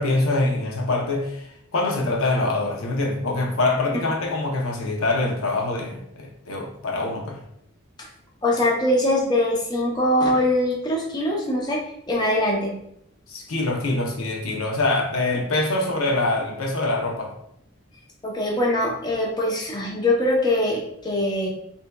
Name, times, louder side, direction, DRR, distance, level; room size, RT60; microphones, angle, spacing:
voice 1, 0.0-1.5 1.7-7.4 13.3-17.3, left 2 dB, 85° left, 0 dB, 0.7 m, -24 dB
voice 2, 8.4-11.8 12.1-12.7 18.2-21.5, left 1 dB, 20° left, -2 dB, 0.5 m, -22 dB
3.4 x 2.7 x 2.2 m, 0.73 s
head